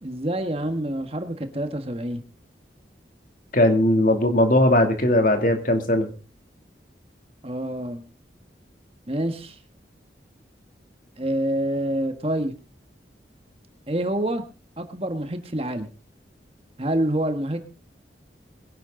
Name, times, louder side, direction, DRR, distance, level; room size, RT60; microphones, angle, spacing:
voice 1, 0.0-2.2 7.4-8.0 9.1-9.6 11.2-12.5 13.9-14.4 14.8-15.9 16.8-17.6, right 1 dB, 30° right, 7 dB, 1.6 m, -27 dB
voice 2, 3.5-6.1, left 1 dB, 50° left, 5 dB, 2.7 m, -19 dB
22.5 x 11.0 x 3.9 m, 0.33 s
head